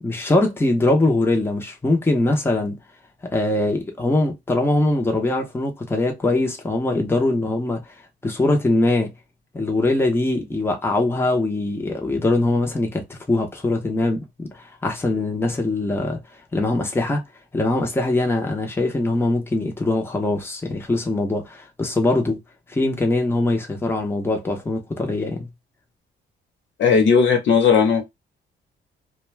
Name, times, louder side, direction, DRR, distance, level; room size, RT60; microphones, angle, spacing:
voice 1, 0.0-2.8 3.3-7.8 8.2-9.1 9.5-16.2 16.5-17.2 17.5-22.4 22.7-25.5, left 2 dB, 10° left, 0.8 m, -22 dB
voice 2, 26.8-28.0, left 6 dB, 65° left, 1.1 m, -16 dB
2.3 x 2.2 x 3.2 m
cardioid pair, 90°, 20 cm